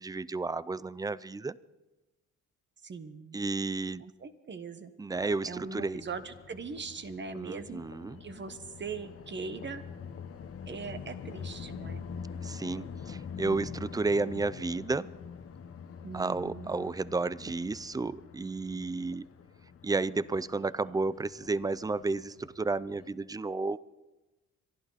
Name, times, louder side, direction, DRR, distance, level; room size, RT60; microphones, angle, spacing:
voice 1, 0.0-1.6 3.3-4.0 5.0-6.0 7.4-8.2 12.4-15.1 16.1-19.3 19.8-23.8, right 3 dB, 15° right, 19 dB, 0.4 m, -32 dB
voice 2, 2.8-3.4 4.0-4.9 5.4-7.8 8.2-9.8 10.7-12.1 16.0-16.7, right 5 dB, 40° right, 10 dB, 1.3 m, -41 dB
sound 1, 5.4-23.1, left 6 dB, 50° left, 1.2 m, -45 dB
26.0 x 11.5 x 4.1 m, 1.1 s
cardioid pair, 90°, 30 cm